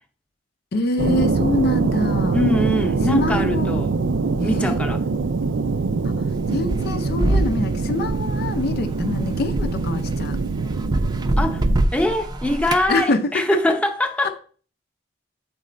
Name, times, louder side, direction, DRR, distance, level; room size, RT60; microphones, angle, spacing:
voice 1, 0.7-2.4 3.0-3.8 4.4-4.8 6.0-10.4 12.9-13.6 14.2-14.3, left 2 dB, 55° left, 0.5 m, -25 dB
sound 1, 1.0-11.8, right 4 dB, 80° right, 0.5 m, -23 dB
voice 2, 2.3-3.9 4.4-5.0 11.4-11.6 11.9-14.3, left 1 dB, 5° left, 0.7 m, -23 dB
sound 2, 6.3-12.9, right 1 dB, 20° right, 0.5 m, -25 dB
7.7 x 3.2 x 5.0 m
head